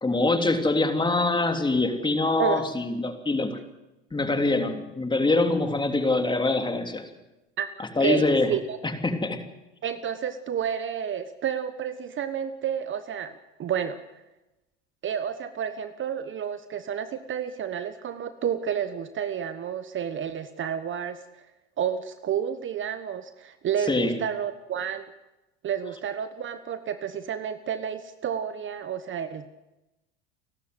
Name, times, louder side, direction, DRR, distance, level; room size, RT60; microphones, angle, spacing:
voice 1, 0.0-3.6 4.1-7.0 7.8-8.5 8.8-9.4 23.9-24.1, left 2 dB, 15° left, 5 dB, 3.2 m, -24 dB
voice 2, 8.0-8.8 9.8-14.0 15.0-21.2 21.8-25.1 25.6-29.5, right 8 dB, 35° right, 11 dB, 1.3 m, -30 dB
30.0 x 12.5 x 8.0 m, 0.99 s
hypercardioid pair, 90°, 33 cm